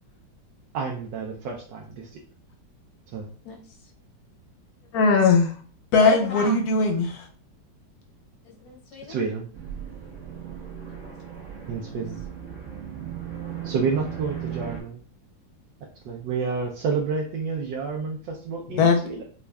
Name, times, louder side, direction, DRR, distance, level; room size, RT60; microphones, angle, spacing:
voice 1, 0.7-2.2 3.1-3.3 9.1-9.5 11.7-12.2 13.6-15.0 16.0-19.2, right 5 dB, 75° right, 0 dB, 1.3 m, -29 dB
voice 2, 3.4-3.9 6.0-6.6 8.4-9.2 10.9-11.0 11.8-11.9, left 4 dB, 90° left, -1 dB, 1.8 m, -36 dB
voice 3, 4.9-5.5 5.9-7.3 18.8-19.0, left 4 dB, 65° left, 4 dB, 1.1 m, -19 dB
sound 1, 9.5-14.8, right 9 dB, 45° right, 1.3 m, -37 dB
5.2 x 2.3 x 2.3 m, 0.42 s
omnidirectional pair, 2.0 m